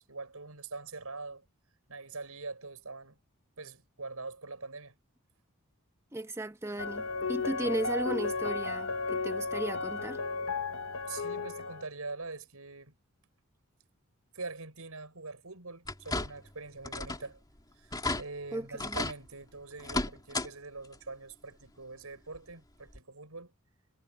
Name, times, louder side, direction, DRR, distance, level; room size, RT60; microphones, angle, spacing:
voice 1, 0.0-1.4 1.9-3.2 3.6-5.0 10.7-12.9 14.3-17.4 17.8-23.5, right 3 dB, 80° right, 5.6 m, -43 dB
voice 2, 6.1-10.2 18.5-19.0, right 1 dB, 10° right, 1.3 m, -36 dB
sound 1, 6.8-11.8, left 4 dB, 60° left, 1.0 m, -34 dB
sound 2, 15.8-16.5 16.8-17.3 17.6-17.7 17.9-18.2 18.8-19.2 19.8-20.5 20.8-21.0 22.3-22.4 22.9-23.0, left 2 dB, 20° left, 3.1 m, -34 dB
head